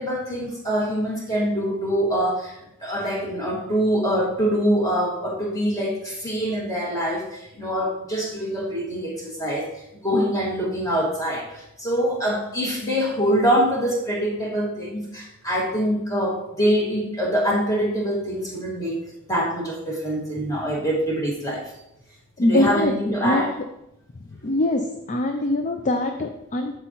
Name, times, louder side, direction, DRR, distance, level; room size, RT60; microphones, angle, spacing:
voice 1, 0.0-19.0 19.3-21.7 22.4-23.6 24.4-24.5, equal, 15° left, -4 dB, 2.0 m, -24 dB
voice 2, 22.4-22.9 23.2-23.4 24.4-24.8 25.1-26.8, left 1 dB, 35° left, 5 dB, 0.5 m, -22 dB
7.8 x 6.9 x 3.0 m, 0.84 s
head